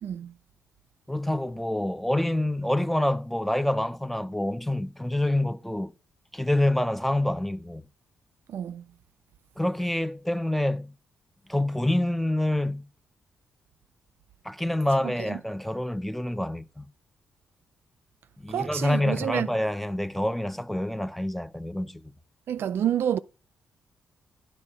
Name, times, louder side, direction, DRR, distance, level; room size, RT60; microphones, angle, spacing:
voice 1, 0.0-0.3 8.5-8.8 15.0-15.4 18.5-19.5 22.5-23.2, right 10 dB, 60° right, 0.4 m, -29 dB
voice 2, 1.1-5.9 6.3-7.9 9.6-10.9 11.5-12.9 14.4-16.9 18.4-22.0, left 1 dB, 5° left, 0.7 m, -27 dB
9.8 x 4.5 x 6.6 m
hypercardioid pair, 40°, 4 cm